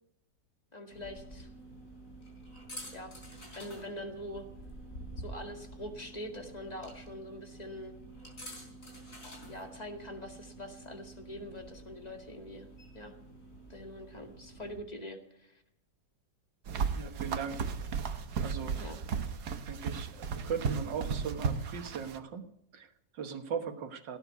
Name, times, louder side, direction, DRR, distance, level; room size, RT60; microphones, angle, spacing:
voice 1, 0.7-1.5 2.9-3.1 3.5-4.5 5.2-8.0 9.5-12.7 12.9-13.1 13.7-15.6 18.7-19.0, left 1 dB, 20° left, 4 dB, 2.2 m, -44 dB
sound 1, 0.9-14.8, right 1 dB, 45° left, 4.7 m, -49 dB
sound 2, 16.7-22.2, right 5 dB, 65° right, 1.6 m, -34 dB
voice 2, 16.9-17.6 18.4-18.8 19.7-24.2, right 6 dB, 90° right, 7 dB, 2.1 m, -39 dB
17.5 x 9.8 x 8.2 m, 0.76 s
omnidirectional pair, 1.9 m